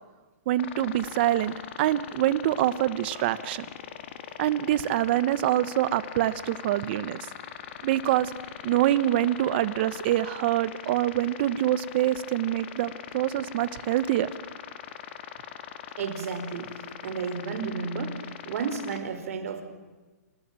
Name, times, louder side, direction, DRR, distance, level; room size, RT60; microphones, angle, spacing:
voice 1, 0.5-3.7 4.4-7.2 7.8-8.3 8.6-14.3, right 13 dB, 40° right, 16 dB, 1.1 m, -25 dB
sound 1, 0.6-19.0, left 10 dB, 45° left, 2.1 m, -41 dB
voice 2, 16.0-16.7 17.0-18.2 18.4-19.6, right 5 dB, 55° right, 6 dB, 4.2 m, -32 dB
28.0 x 15.0 x 9.0 m, 1.2 s
hypercardioid pair, 160°, 9 cm